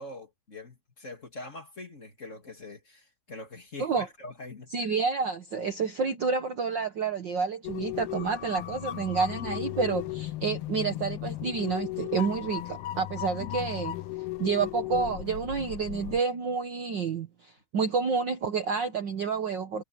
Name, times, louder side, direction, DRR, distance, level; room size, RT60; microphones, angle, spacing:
voice 1, 0.0-4.9, left 2 dB, 25° left, 2.3 m, -44 dB
voice 2, 4.7-14.0 14.4-19.8, right 5 dB, 80° right, 1.0 m, -29 dB
sound 1, 7.6-16.2, left 15 dB, 80° left, 1.3 m, -36 dB
omnidirectional pair, 3.8 m